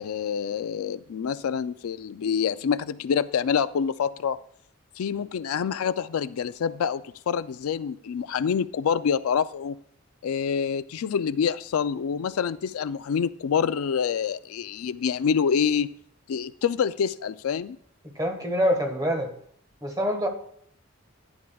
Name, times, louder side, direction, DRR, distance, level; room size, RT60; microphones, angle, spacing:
voice 1, 0.0-4.4 5.0-9.8 10.2-15.9 16.3-17.8, left 7 dB, 85° left, 15 dB, 0.4 m, -26 dB
voice 2, 18.0-19.3 19.8-20.3, equal, 20° right, 4 dB, 1.5 m, -25 dB
14.5 x 9.9 x 2.3 m, 0.64 s
head